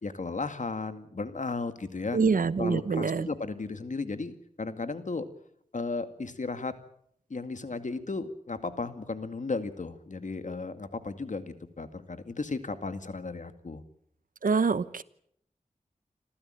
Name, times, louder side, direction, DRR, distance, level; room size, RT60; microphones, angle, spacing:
voice 1, 0.0-2.2 2.6-5.3 5.7-6.7 7.3-13.8, left 3 dB, 65° left, 10 dB, 2.2 m, -35 dB
voice 2, 2.1-3.3 14.4-15.0, right 5 dB, 80° right, 16 dB, 1.0 m, -25 dB
27.0 x 14.5 x 9.1 m, 0.69 s
wide cardioid pair, 50°, 14 cm